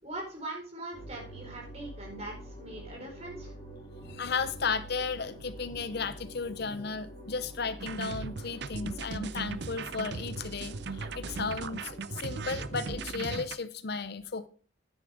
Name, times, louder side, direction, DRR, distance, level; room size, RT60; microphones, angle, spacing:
voice 1, 0.0-3.5, right 2 dB, 35° right, 4.9 m, -41 dB
sound 1, 0.9-13.2, equal, 30° left, 2.9 m, -46 dB
voice 2, 4.0-14.5, left 4 dB, 55° left, 0.7 m, -34 dB
sound 2, 7.8-13.6, right 4 dB, 60° right, 0.6 m, -38 dB
10.0 x 9.7 x 3.6 m
head